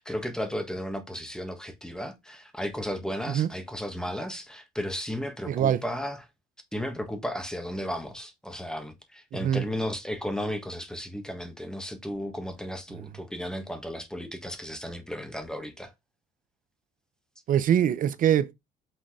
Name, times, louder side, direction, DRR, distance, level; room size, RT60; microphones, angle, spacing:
voice 1, 0.0-6.2 6.7-15.9, equal, 5° left, 1.5 m, -34 dB
voice 2, 5.5-5.8 9.3-9.7 17.5-18.5, right 10 dB, 55° right, 0.7 m, -23 dB
6.2 x 3.9 x 4.9 m
cardioid pair, 110°, 17 cm